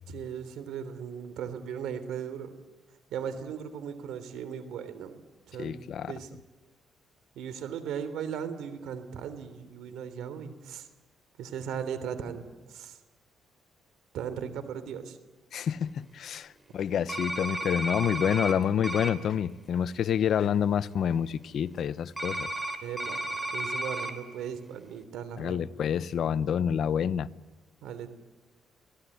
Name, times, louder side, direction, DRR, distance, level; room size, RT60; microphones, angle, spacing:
voice 1, 0.1-2.5 3.1-5.1 5.5-6.3 7.3-10.9 11.4-13.0 14.1-15.2 22.8-25.8 27.8-28.1, right 8 dB, 85° right, 3.3 m, -37 dB
voice 2, 5.6-6.1 15.5-22.5 25.4-27.3, left 8 dB, 65° left, 0.9 m, -28 dB
sound 1, 17.1-18.5 18.8-19.1 22.2-24.1, right 1 dB, 15° right, 4.0 m, -33 dB
28.0 x 18.0 x 9.9 m
cardioid pair, 90°, 0 cm